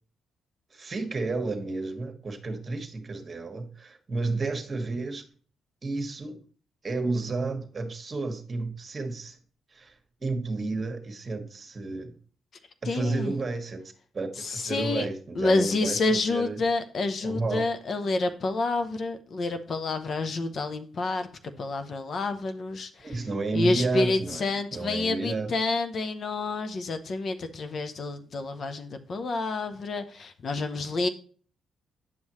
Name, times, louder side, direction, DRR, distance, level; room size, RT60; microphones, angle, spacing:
voice 1, 0.7-5.2 5.8-6.4 6.8-9.4 9.7-9.9 10.2-12.1 12.8-16.6 17.2-17.7 23.0-25.5, right 3 dB, 35° right, 5 dB, 1.4 m, -31 dB
voice 2, 12.9-13.4 14.4-15.0 15.3-23.2 23.5-31.1, left 3 dB, 55° left, 8 dB, 0.8 m, -28 dB
9.3 x 5.6 x 3.1 m, 0.43 s
cardioid pair, 70°, 0 cm